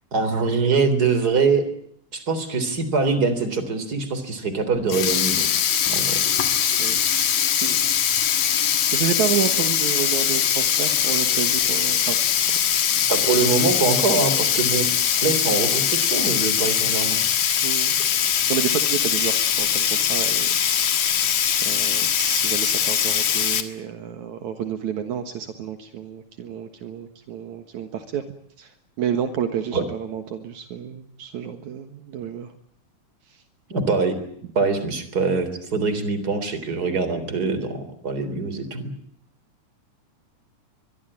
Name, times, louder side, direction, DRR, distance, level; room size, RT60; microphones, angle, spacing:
voice 1, 0.1-1.7 2.1-5.5 5.9-6.2 13.1-14.9 15.2-17.2 29.7-29.8 33.7-34.2 34.6-38.9, right 4 dB, 30° right, 12 dB, 3.8 m, -23 dB
Sink (filling or washing), 4.8-23.6, left 9 dB, 70° left, 3.1 m, -21 dB
voice 2, 8.9-12.2 17.6-17.9 18.5-20.9 21.6-28.2 28.6-28.7 29.0-32.5 33.3-33.4, right 9 dB, 70° right, 8 dB, 2.7 m, -30 dB
24.0 x 22.5 x 8.7 m, 0.69 s
omnidirectional pair, 3.5 m